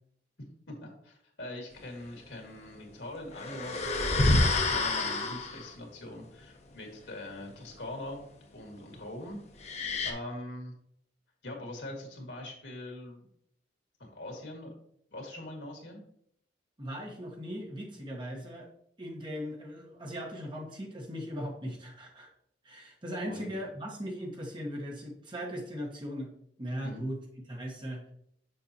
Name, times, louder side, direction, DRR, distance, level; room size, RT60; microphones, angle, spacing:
voice 1, 0.4-8.2 8.5-10.7 11.4-13.3 14.0-14.7 15.1-16.0 23.2-23.6 26.8-27.0, left 1 dB, 80° left, 1 dB, 1.9 m, -43 dB
sound 1, 3.3-5.7 9.6-10.1, left 2 dB, 40° left, 0.8 m, -28 dB
voice 2, 16.8-18.7 19.0-22.3 22.6-26.3 26.6-27.2 27.5-28.0, equal, 25° right, 0 dB, 1.3 m, -38 dB
6.7 x 5.9 x 2.9 m, 0.68 s
head